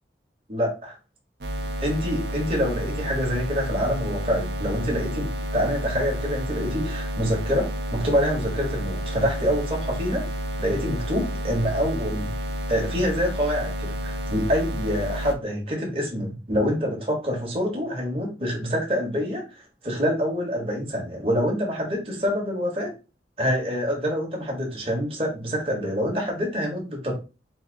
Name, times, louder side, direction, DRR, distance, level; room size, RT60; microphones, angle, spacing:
voice 1, 0.5-1.0 1.8-10.3 10.6-12.3 12.7-22.9 23.4-27.1, equal, 35° right, -1 dB, 1.6 m, -26 dB
sound 1, 1.4-15.3, equal, 80° right, 0.8 m, -30 dB
4.2 x 2.9 x 4.0 m, 0.30 s
head